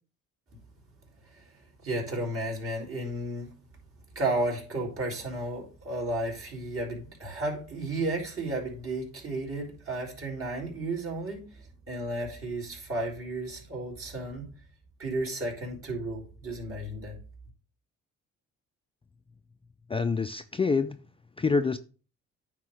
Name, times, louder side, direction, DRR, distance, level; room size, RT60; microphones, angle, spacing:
voice 1, 1.8-3.5 4.2-14.4 15.0-17.2, right 2 dB, 45° right, 3.9 m, -33 dB
voice 2, 19.9-21.0 21.4-21.8, left 4 dB, 20° left, 0.4 m, -26 dB
9.3 x 3.7 x 6.4 m
cardioid pair, 90°, 30 cm